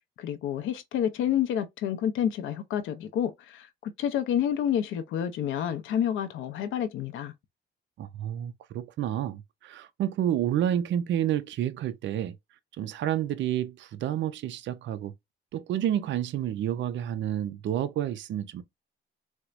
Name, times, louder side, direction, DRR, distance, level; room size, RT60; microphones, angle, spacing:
voice 1, 0.2-7.3, left 9 dB, 85° left, 0.5 m, -29 dB
voice 2, 8.0-12.3 12.8-15.1 15.5-18.6, right 11 dB, 70° right, 0.5 m, -29 dB
4.3 x 2.0 x 2.4 m
cardioid pair, 90°, 20 cm